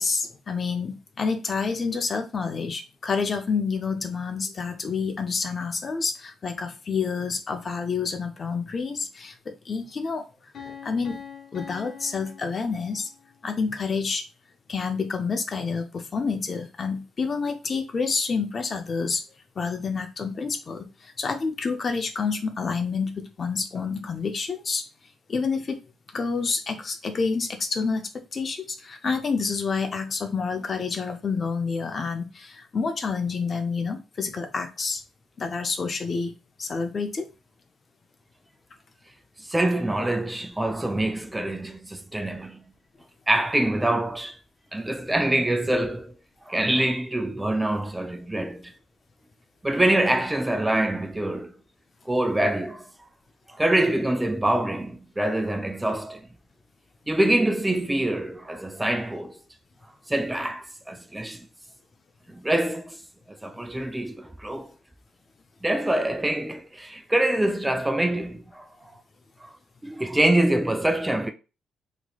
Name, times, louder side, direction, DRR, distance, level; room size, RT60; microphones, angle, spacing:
voice 1, 0.0-10.2 10.6-11.2 11.5-13.1 13.4-14.2 14.7-19.2 19.6-24.8 25.3-25.8 26.1-28.0 28.3-35.0 35.4-36.3 36.6-37.3, left 5 dB, 40° left, 0.6 m, -28 dB
Piano, 10.5-13.3, left 7 dB, 55° left, 1.0 m, -43 dB
voice 2, 39.4-42.6 43.3-44.4 44.7-46.1 46.5-48.7 49.6-51.5 52.1-52.9 53.5-56.3 57.1-59.3 60.1-61.5 62.3-63.0 63.3-64.7 65.6-68.7 69.4-69.5 69.8-71.3, right 1 dB, 10° right, 0.3 m, -25 dB
3.0 x 2.9 x 2.3 m
cardioid pair, 90°, 0 cm